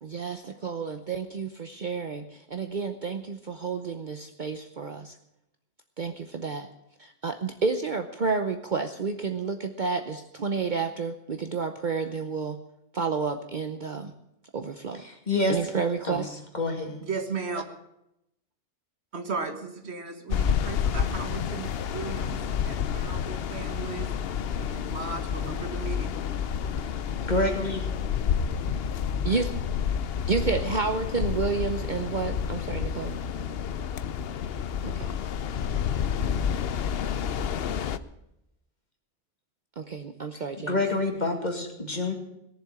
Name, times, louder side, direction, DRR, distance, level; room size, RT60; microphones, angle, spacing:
voice 1, 0.0-5.1 6.0-6.7 7.0-12.6 12.9-14.1 14.5-15.0 15.5-16.4 29.2-29.5 30.3-33.2 34.8-35.2 39.8-40.8, right 4 dB, 45° right, 7 dB, 0.9 m, -30 dB
voice 2, 14.9-15.6 16.0-16.2 16.5-17.0 27.2-27.8 40.3-42.1, left 2 dB, 40° left, 2 dB, 2.4 m, -28 dB
voice 3, 17.0-17.6 19.1-24.1 24.6-26.1, right 4 dB, 65° right, 6 dB, 1.7 m, -36 dB
sound 1, 20.3-38.0, left 7 dB, 60° left, 0.8 m, -29 dB
18.0 x 7.3 x 8.8 m, 0.83 s
omnidirectional pair, 1.2 m